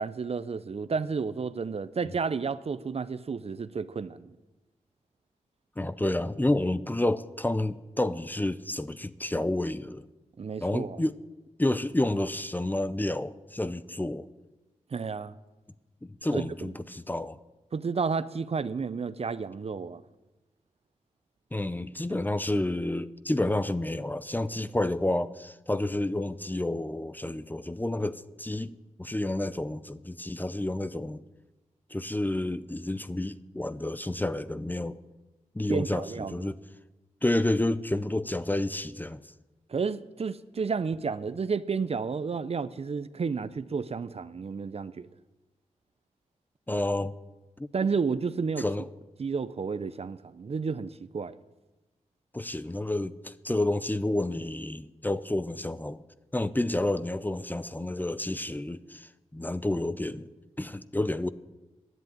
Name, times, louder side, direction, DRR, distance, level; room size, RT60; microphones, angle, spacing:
voice 1, 0.0-4.3 10.4-11.0 14.9-15.3 16.3-16.7 17.7-20.0 35.7-36.5 39.7-45.1 47.7-48.7 49.2-51.4, right 5 dB, 50° right, 0.6 m, -31 dB
voice 2, 5.8-10.1 10.6-11.2 11.6-14.3 16.0-17.4 21.5-28.7 29.0-31.2 31.9-35.0 35.5-36.6 37.2-39.2 46.7-47.1 47.6-47.7 48.6-48.9 52.3-56.0 56.3-60.3 60.6-61.3, left 1 dB, 15° left, 0.6 m, -30 dB
11.0 x 7.8 x 9.3 m
cardioid pair, 50°, 13 cm